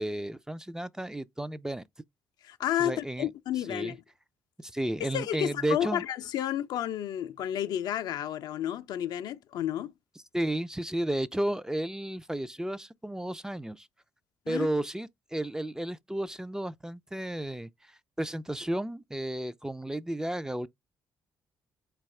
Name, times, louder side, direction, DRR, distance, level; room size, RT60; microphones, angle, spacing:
voice 1, 0.0-1.8 2.8-3.3 3.7-4.0 4.6-6.0 10.3-13.9 14.5-20.7, right 1 dB, 10° right, 0.3 m, -33 dB
voice 2, 2.4-4.0 5.0-9.9 14.5-14.7, left 11 dB, 70° left, 0.4 m, -31 dB
4.0 x 2.3 x 3.2 m
hypercardioid pair, 55°, 7 cm